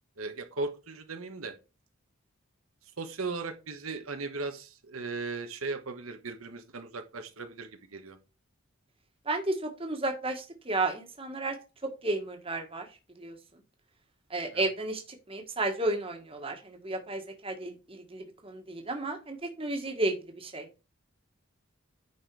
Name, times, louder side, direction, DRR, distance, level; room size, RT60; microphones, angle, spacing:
voice 1, 0.2-1.5 3.0-8.2 14.5-14.7, right 3 dB, 85° right, 6 dB, 1.2 m, -37 dB
voice 2, 9.2-11.5 12.0-12.9 13.2-13.3 14.3-15.0 15.3-20.7, right 2 dB, 25° right, 4 dB, 1.6 m, -32 dB
9.9 x 4.4 x 4.7 m, 0.30 s
head